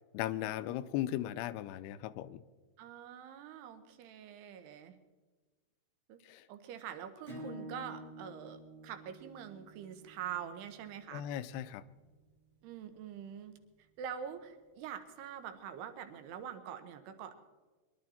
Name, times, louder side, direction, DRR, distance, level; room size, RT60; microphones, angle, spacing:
voice 1, 0.1-2.4 6.3-6.4 11.1-11.8, left 12 dB, 85° left, 14 dB, 2.7 m, -37 dB
voice 2, 2.8-5.0 6.1-6.2 6.5-11.2 12.6-13.5 14.0-17.4, right 9 dB, 85° right, 8 dB, 3.1 m, -45 dB
Acoustic guitar / Strum, 7.2-12.5, equal, 20° right, 1.4 m, -51 dB
22.5 x 11.5 x 4.3 m, 1.3 s
omnidirectional pair, 4.6 m